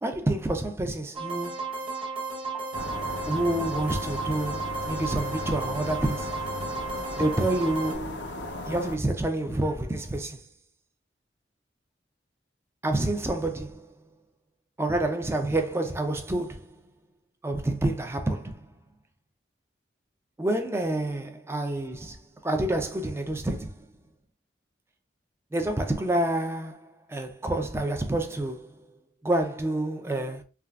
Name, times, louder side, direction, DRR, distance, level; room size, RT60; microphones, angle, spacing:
voice 1, 0.0-1.7 3.3-6.5 7.2-10.4 12.8-14.0 14.8-16.7 17.4-18.7 20.4-23.9 25.5-26.8 27.1-29.0 29.2-30.4, right 1 dB, 15° right, 0.4 m, -28 dB
sound 1, 1.1-7.9, right 3 dB, 30° right, 0.9 m, -34 dB
sound 2, 2.7-9.0, left 1 dB, 85° left, 0.6 m, -36 dB
3.4 x 2.3 x 2.3 m
head